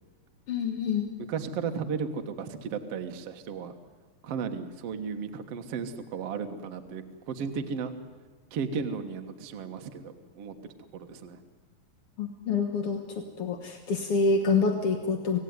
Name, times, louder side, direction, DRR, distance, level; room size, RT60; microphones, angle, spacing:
voice 1, 0.5-1.1 12.2-15.4, left 4 dB, 60° left, 4 dB, 1.5 m, -27 dB
voice 2, 1.3-3.7 4.2-7.9 8.5-10.5 10.9-11.4, right 6 dB, 60° right, 6 dB, 1.6 m, -34 dB
27.0 x 18.0 x 9.6 m, 1.4 s
omnidirectional pair, 4.6 m